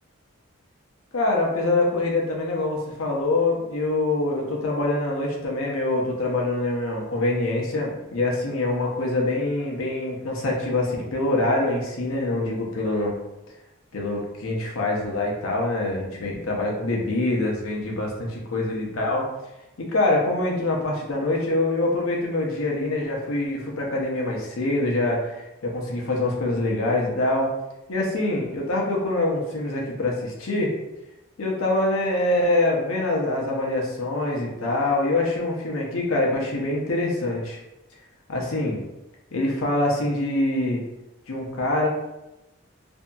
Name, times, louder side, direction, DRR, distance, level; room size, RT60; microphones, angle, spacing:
voice 1, 1.1-13.2 13.9-19.3 19.8-27.5 27.9-30.7 31.4-37.6 38.3-38.8 39.3-40.8 41.3-41.9, left 2 dB, 80° left, -1 dB, 0.7 m, -25 dB
2.7 x 2.6 x 2.3 m, 0.95 s
head